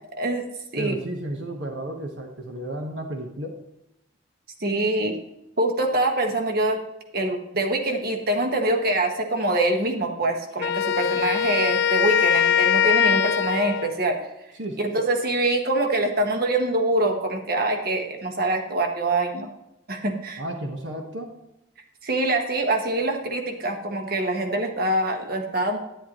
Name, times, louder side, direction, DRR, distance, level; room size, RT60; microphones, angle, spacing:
voice 1, 0.8-3.6 14.5-14.8 20.4-21.3, right 1 dB, 70° right, 2 dB, 1.2 m, -32 dB
voice 2, 4.6-5.2 5.6-6.8 7.1-14.2 14.8-19.5 19.9-20.4 22.0-25.8, right 2 dB, 55° right, 4 dB, 1.4 m, -24 dB
Wind instrument woodwind instrument, 10.6-14.0, left 8 dB, 60° left, 0.4 m, -22 dB
10.5 x 10.0 x 3.0 m, 0.89 s
head